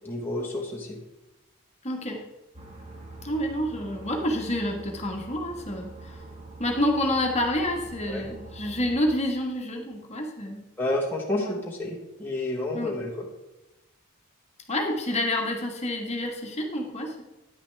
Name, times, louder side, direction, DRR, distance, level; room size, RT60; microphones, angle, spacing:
voice 1, 0.0-1.0 8.1-8.2 10.8-13.3, left 1 dB, 10° left, -3 dB, 1.3 m, -30 dB
voice 2, 1.8-2.2 3.2-6.2 6.6-10.6 11.4-11.6 12.7-13.0 14.7-17.2, left 1 dB, 30° left, 2 dB, 1.4 m, -28 dB
sound 1, 2.5-9.0, right 2 dB, 30° right, 1.6 m, -44 dB
10.0 x 9.6 x 3.4 m, 0.97 s
head